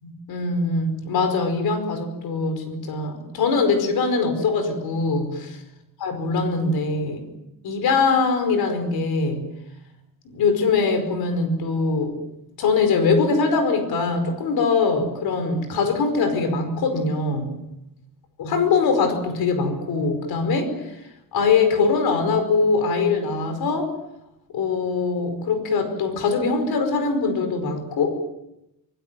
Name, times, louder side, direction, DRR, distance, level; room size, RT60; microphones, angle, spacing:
voice 1, 0.0-5.6 6.0-7.3 7.6-9.5 10.3-12.2 12.6-17.6 18.4-20.7 21.3-23.9 24.5-28.2, left 4 dB, 75° left, 8 dB, 5.1 m, -22 dB
25.5 x 21.0 x 7.6 m, 0.87 s
cardioid pair, 170°, 37 cm